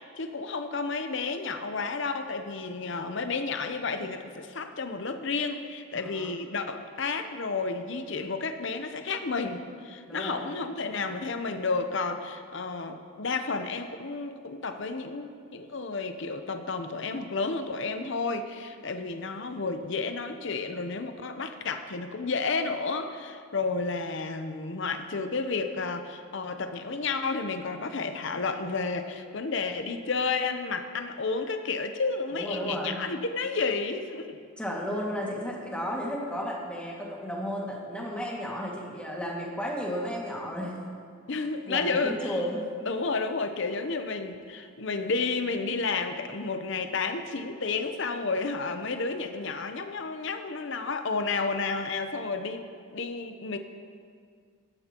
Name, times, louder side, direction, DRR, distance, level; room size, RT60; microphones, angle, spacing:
voice 1, 0.2-34.4 41.3-42.4 42.9-52.7 52.9-53.6, left 4 dB, 60° left, 7 dB, 0.7 m, -31 dB
voice 2, 5.9-6.3 10.1-10.5 32.3-33.0 34.6-40.8 41.3-42.7, equal, 5° left, -3 dB, 2.0 m, -33 dB
17.5 x 14.0 x 3.0 m, 2.1 s
head